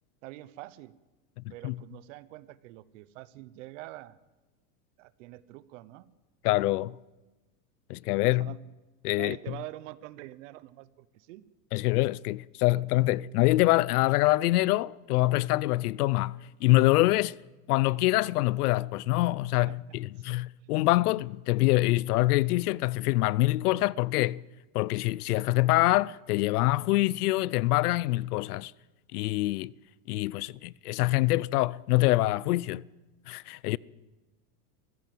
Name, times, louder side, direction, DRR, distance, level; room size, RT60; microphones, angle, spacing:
voice 1, 0.2-0.9 1.5-4.2 5.0-6.1 8.4-8.6 9.2-11.4 19.7-19.8 20.3-20.4, right 17 dB, 50° right, 0.9 m, -45 dB
voice 2, 1.4-1.8 6.4-7.0 7.9-8.5 9.0-9.5 11.7-17.4 17.7-24.4 24.7-28.7 29.1-29.7 30.1-32.8 33.3-33.8, left 18 dB, 70° left, 0.6 m, -25 dB
22.5 x 15.5 x 7.8 m
supercardioid pair, 170°, 48 cm